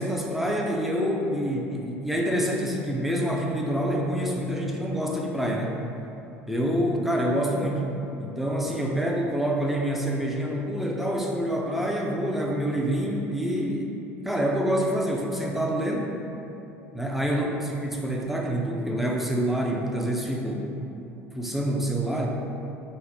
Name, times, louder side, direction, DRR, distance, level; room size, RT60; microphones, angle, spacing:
voice 1, 0.0-5.8 6.5-7.9 8.2-14.0 14.2-16.1 16.9-20.7 21.3-22.3, equal, 5° right, -1 dB, 0.5 m, -27 dB
3.8 x 2.1 x 4.1 m, 2.9 s
hypercardioid pair, 70°, 8 cm